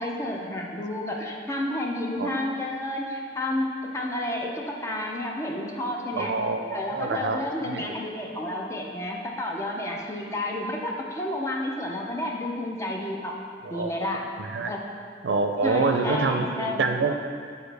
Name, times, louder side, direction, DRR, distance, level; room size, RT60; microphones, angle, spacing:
voice 1, 0.0-6.3 6.7-13.4 13.7-14.3 14.6-14.8 15.6-16.8, left 1 dB, 15° left, 0 dB, 0.5 m, -30 dB
voice 2, 6.1-7.8 13.6-13.9 14.4-14.7 15.2-17.1, right 3 dB, 80° right, 5 dB, 0.4 m, -26 dB
6.9 x 4.3 x 3.3 m, 2.2 s
head